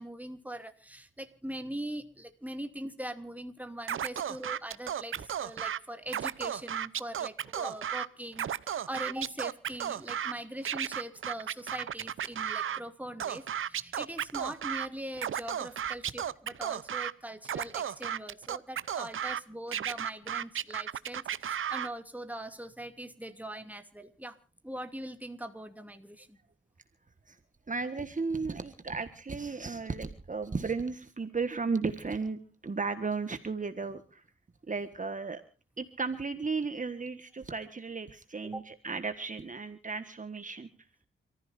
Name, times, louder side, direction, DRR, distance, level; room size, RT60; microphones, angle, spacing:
voice 1, 0.0-24.4 24.6-26.4 38.4-38.6, right 1 dB, 5° right, 7 dB, 2.5 m, -41 dB
Scratching (performance technique), 3.9-5.8 6.1-8.1 8.3-10.3 10.7-12.8 13.2-14.9 15.2-17.1 17.5-19.4 19.7-21.9, right 9 dB, 90° right, 0.7 m, -34 dB
voice 2, 27.7-34.2 34.7-35.4 35.8-40.7, right 4 dB, 40° right, 9 dB, 1.5 m, -34 dB
29.0 x 14.5 x 2.6 m, 0.37 s
cardioid pair, 70°, 20 cm